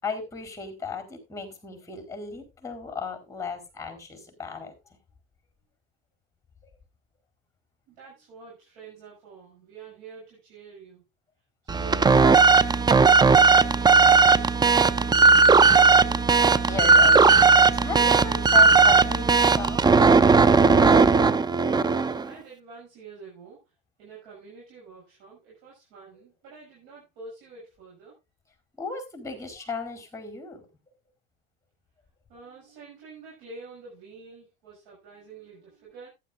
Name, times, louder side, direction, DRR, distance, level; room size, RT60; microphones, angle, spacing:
voice 1, 0.0-4.7 16.6-20.0 28.8-30.7, left 4 dB, 10° left, 5 dB, 4.2 m, -35 dB
voice 2, 7.9-11.1 11.6-16.3 21.8-23.7 24.0-28.1 32.3-36.1, right 4 dB, 75° right, -5 dB, 6.9 m, -47 dB
sound 1, 11.7-22.3, right 4 dB, 15° right, 0.5 m, -17 dB
14.0 x 10.5 x 2.6 m, 0.24 s
supercardioid pair, 95°, 30 cm